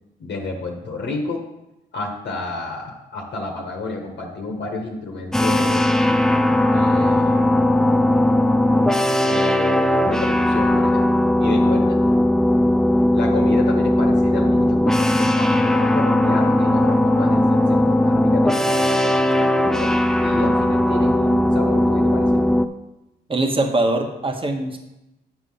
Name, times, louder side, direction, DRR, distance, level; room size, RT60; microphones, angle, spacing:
voice 1, 0.2-1.4 1.9-6.0 6.7-7.5 9.2-11.1 11.4-12.0 13.1-19.9 20.2-22.5, left 3 dB, 60° left, 0 dB, 1.4 m, -30 dB
sound 1, 5.3-22.7, left 1 dB, ahead, 0.5 m, -18 dB
voice 2, 23.3-24.8, right 2 dB, 25° right, 3 dB, 1.4 m, -22 dB
8.6 x 4.8 x 5.6 m, 0.94 s
supercardioid pair, 65°, 21 cm